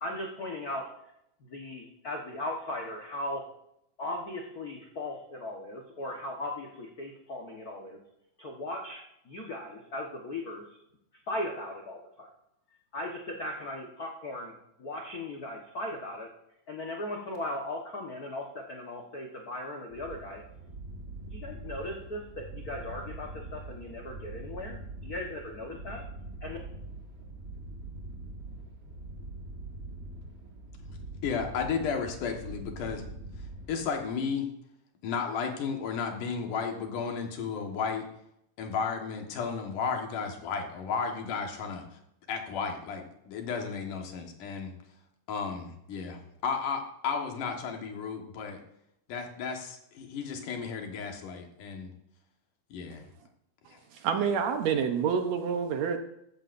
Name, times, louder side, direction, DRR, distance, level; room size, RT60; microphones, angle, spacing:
voice 1, 0.0-0.8 1.4-3.4 4.0-8.0 8.4-10.8 11.3-12.3 12.9-14.5 14.8-16.3 16.7-20.4 21.2-26.0 26.4-26.6, left 1 dB, 60° left, 0 dB, 0.9 m, -38 dB
sound 1, 19.9-34.2, right 2 dB, 40° right, 0.9 m, -43 dB
voice 2, 31.2-33.0 33.7-34.5 35.0-38.1 38.6-42.0 42.3-44.7 45.3-48.6 49.1-51.9 52.7-53.1, left 5 dB, 80° left, 3 dB, 3.1 m, -33 dB
voice 3, 53.9-56.0, right 7 dB, 70° right, 6 dB, 1.9 m, -28 dB
14.0 x 14.0 x 2.6 m, 0.79 s
omnidirectional pair, 3.7 m